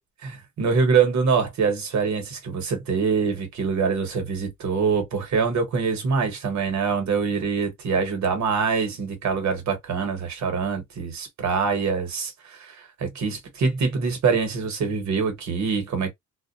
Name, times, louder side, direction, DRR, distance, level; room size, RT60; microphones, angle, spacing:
voice 1, 0.2-16.1, right 5 dB, 65° right, 1.3 m, -24 dB
2.4 x 2.1 x 2.5 m
cardioid pair, 110°, 31 cm